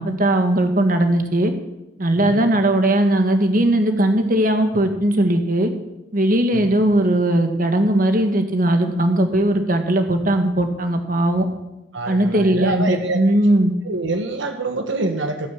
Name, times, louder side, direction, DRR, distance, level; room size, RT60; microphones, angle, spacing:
voice 1, 0.0-1.5 2.0-5.7 6.1-11.5 12.1-13.7, right 1 dB, 45° right, 6 dB, 1.7 m, -18 dB
voice 2, 2.1-2.5 6.5-6.7 11.9-13.2 13.8-15.5, right 2 dB, 75° right, 6 dB, 1.3 m, -25 dB
15.5 x 9.7 x 7.3 m, 0.97 s
head